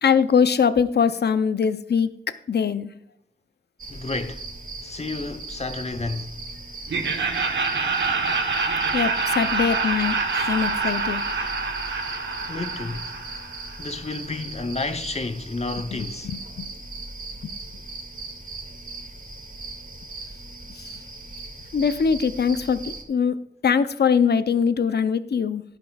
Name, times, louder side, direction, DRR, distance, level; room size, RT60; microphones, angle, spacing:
voice 1, 0.0-2.9 8.9-11.2 15.9-16.7 17.4-17.5 20.7-20.9 21.7-23.4 23.6-25.6, left 6 dB, 70° left, 0.6 m, -22 dB
sound 1, 3.8-23.0, right 3 dB, 50° right, 2.3 m, -38 dB
voice 2, 3.9-4.5 4.8-6.4 12.5-13.1 13.8-16.3, left 3 dB, 35° left, 0.9 m, -31 dB
Laughter, 6.9-13.8, right 4 dB, 85° right, 1.1 m, -26 dB
12.0 x 11.0 x 2.3 m
wide cardioid pair, 65°, 18 cm